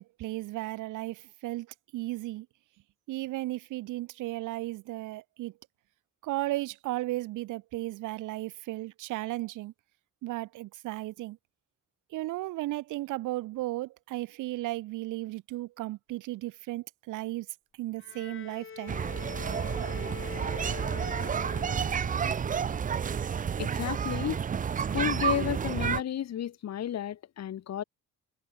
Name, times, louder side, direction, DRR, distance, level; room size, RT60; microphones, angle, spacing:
voice 1, 0.0-1.7 1.9-2.5 3.1-5.5 6.2-9.7 10.2-11.4 12.1-17.5 17.8-19.0, right 17 dB, 90° right, 1.0 m, -35 dB
Bowed string instrument, 18.0-22.4, left 6 dB, 40° left, 3.7 m, -43 dB
sound 1, 18.9-26.0, right 7 dB, 25° right, 0.5 m, -30 dB
voice 2, 23.6-24.4 24.9-27.8, left 10 dB, 60° left, 1.6 m, -32 dB
cardioid pair, 90°, 30 cm